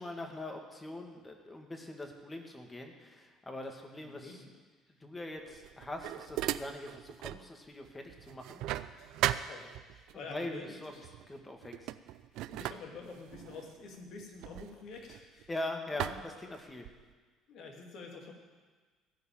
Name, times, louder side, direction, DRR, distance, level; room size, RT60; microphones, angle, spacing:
voice 1, 0.0-4.4 5.0-8.6 10.3-11.0 11.3-11.9 15.5-16.9, left 1 dB, 20° left, 3 dB, 2.1 m, -42 dB
voice 2, 4.0-4.5 8.9-11.1 12.3-15.5 15.9-16.1 17.5-18.3, left 3 dB, 60° left, 1 dB, 2.5 m, -48 dB
sound 1, 5.5-7.5 7.8-10.2 11.0-11.3 11.6-15.5 16.0-17.1, right 14 dB, 70° right, 0.4 m, -38 dB
15.5 x 5.5 x 9.0 m, 1.4 s
hypercardioid pair, 65°, 0 cm